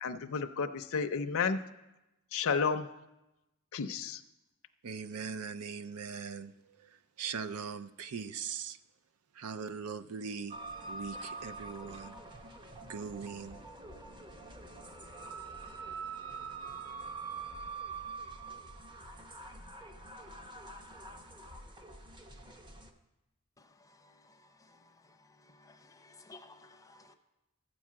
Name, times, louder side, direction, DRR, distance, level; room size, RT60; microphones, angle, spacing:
voice 1, 0.0-1.6 2.3-2.9 3.7-4.2, left 5 dB, 65° left, 7 dB, 0.5 m, -32 dB
voice 2, 4.8-6.5 7.2-8.8 9.4-10.6 10.9-12.1 12.9-13.6, right 6 dB, 80° right, 13 dB, 0.5 m, -40 dB
sound 1, 10.5-22.9, right 4 dB, 20° right, 0.8 m, -45 dB
voice 3, 24.0-24.4 24.7-24.8 25.5-27.1, left 3 dB, 15° left, 7 dB, 0.6 m, -56 dB
13.0 x 4.7 x 7.4 m, 0.98 s
head